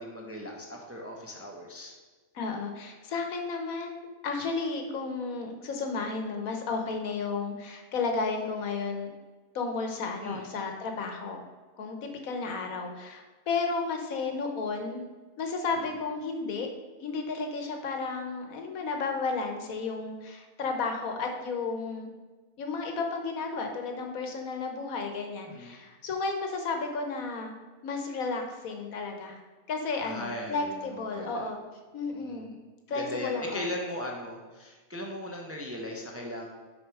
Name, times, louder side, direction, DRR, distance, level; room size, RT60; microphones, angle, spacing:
voice 1, 0.0-1.9 10.2-10.4 25.5-25.7 29.9-31.5 32.2-32.5 32.9-36.5, left 1 dB, 15° right, 0 dB, 0.7 m, -38 dB
voice 2, 2.3-9.1 9.5-11.4 11.8-15.0 15.4-16.7 17.0-22.1 22.6-27.5 27.8-29.4 29.7-31.6 31.9-32.5 32.9-33.7, left 4 dB, 80° left, 4 dB, 1.4 m, -33 dB
6.2 x 4.8 x 4.8 m, 1.3 s
omnidirectional pair, 1.4 m